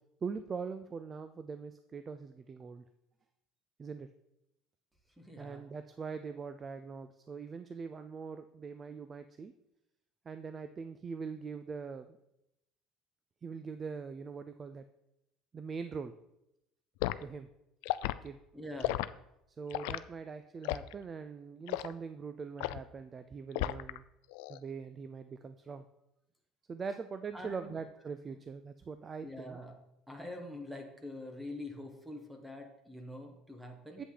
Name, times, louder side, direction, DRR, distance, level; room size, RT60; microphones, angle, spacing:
voice 1, 0.2-2.8 3.8-4.1 5.4-9.5 10.3-12.2 13.4-14.8 15.5-16.1 17.2-17.5 18.2-18.4 19.6-24.0 24.5-25.8 26.7-29.6 34.0-34.1, right 5 dB, 25° right, 10 dB, 0.4 m, -42 dB
voice 2, 5.1-5.7 18.5-19.0 27.3-27.8 28.3-28.4 29.2-29.7 30.1-34.0, left 1 dB, 5° right, 3 dB, 1.3 m, -45 dB
Liquid, 17.0-17.2 17.8-18.2 18.8-19.1 19.7-20.0 20.6-20.9 21.7-21.9 22.6-22.9 23.5-24.0 24.3-24.6, left 17 dB, 85° left, 0.3 m, -34 dB
8.2 x 8.1 x 3.9 m, 0.85 s
cardioid pair, 150°, 0 cm